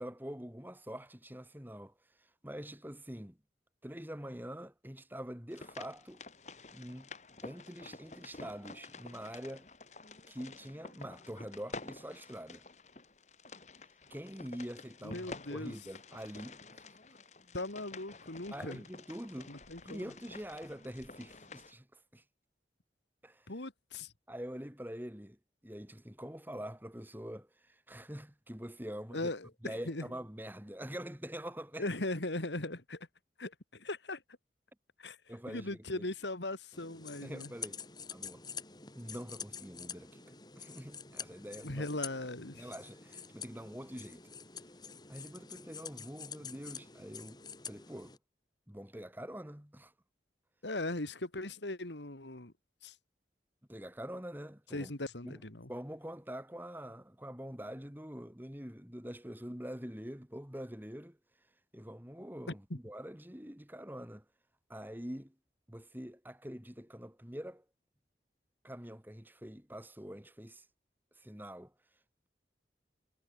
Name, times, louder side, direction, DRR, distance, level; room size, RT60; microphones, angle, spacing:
voice 1, 0.0-3.4 3.8-6.2 6.7-7.1 7.4-9.7 10.3-12.6 14.1-16.9 18.5-19.5 19.8-22.2 23.2-23.5 24.3-25.4 25.6-29.3 29.6-31.9 35.3-36.1 37.2-37.8 38.1-38.4 38.9-40.2 40.6-41.9 42.6-44.3 45.1-47.4 47.6-48.2 48.7-49.9 53.7-54.9 55.2-61.2 61.7-64.2 64.7-65.3 65.7-67.6 68.6-70.6 71.2-71.7, equal, 10° right, 2.6 m, -45 dB
sound 1, 5.5-21.7, left 3 dB, 40° left, 2.1 m, -50 dB
voice 2, 15.0-15.8 17.5-18.8 19.5-20.1 23.5-24.1 29.1-30.0 31.8-33.1 33.4-34.2 35.0-35.2 35.5-37.5 41.6-42.7 50.6-52.5 52.8-53.0 54.7-55.7 62.7-62.8, left 2 dB, 90° left, 2.7 m, -39 dB
sound 2, 36.7-48.2, left 6 dB, 25° left, 3.6 m, -47 dB
head